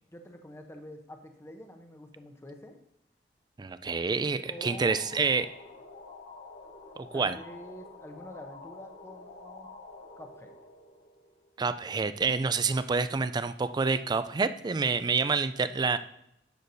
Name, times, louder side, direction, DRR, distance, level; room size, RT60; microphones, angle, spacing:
voice 1, 0.1-2.8 4.5-5.3 7.1-9.7 10.2-10.5, left 1 dB, 15° left, 4 dB, 0.8 m, -46 dB
voice 2, 3.6-5.5 7.0-7.4 11.6-16.0, right 4 dB, 25° right, 13 dB, 0.3 m, -28 dB
sound 1, 4.4-11.8, left 3 dB, 80° left, 1.2 m, -49 dB
10.5 x 7.0 x 2.7 m, 0.79 s
head